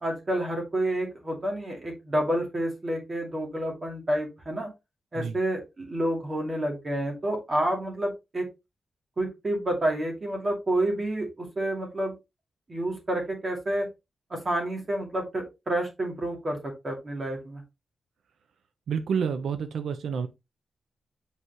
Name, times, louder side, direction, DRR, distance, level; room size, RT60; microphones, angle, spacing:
voice 1, 0.0-4.7 5.1-8.5 9.2-12.1 12.7-13.9 14.3-17.6, right 1 dB, 25° right, 2.5 m, -29 dB
voice 2, 18.9-20.3, right 6 dB, 80° right, 0.6 m, -29 dB
8.0 x 4.9 x 3.1 m
wide cardioid pair, 175°, 0 cm